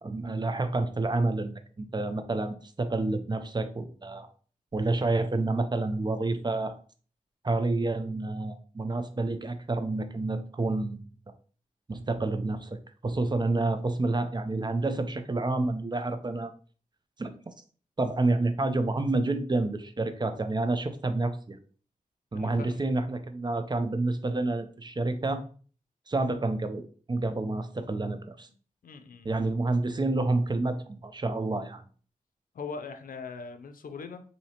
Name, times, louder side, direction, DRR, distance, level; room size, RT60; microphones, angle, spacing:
voice 1, 0.0-4.3 4.7-6.7 7.4-11.0 11.9-16.5 17.2-17.3 18.0-21.6 22.3-25.4 26.1-26.8 27.1-28.5 29.2-31.8, right 2 dB, 30° right, 8 dB, 0.5 m, -29 dB
voice 2, 22.3-22.9 28.8-29.3 32.5-34.2, left 5 dB, 80° left, 8 dB, 0.5 m, -40 dB
4.1 x 2.7 x 2.8 m, 0.42 s
wide cardioid pair, 75°, 14 cm